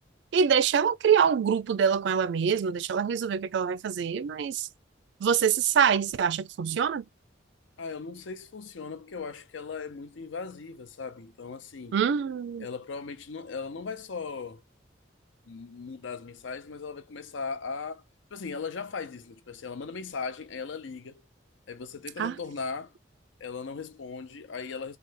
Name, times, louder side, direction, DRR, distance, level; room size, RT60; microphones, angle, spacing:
voice 1, 0.3-4.7 5.2-7.0 11.9-12.7 22.2-22.4, right 7 dB, 70° right, 0.3 m, -25 dB
voice 2, 7.8-12.0 12.6-14.6 15.5-18.0 18.3-21.2 21.7-22.9 23.4-25.0, left 5 dB, 85° left, 0.6 m, -38 dB
3.2 x 2.2 x 3.2 m
head